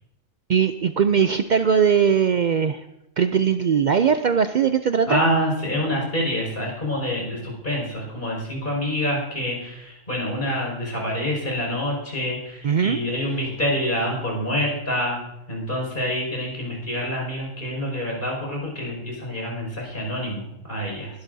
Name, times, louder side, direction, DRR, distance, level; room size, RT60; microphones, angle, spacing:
voice 1, 0.5-2.8 3.2-5.2 12.6-13.0, right 7 dB, 85° right, 9 dB, 0.4 m, -20 dB
voice 2, 5.1-21.1, equal, 40° left, -2 dB, 5.9 m, -27 dB
22.5 x 12.0 x 2.7 m, 0.86 s
omnidirectional pair, 1.4 m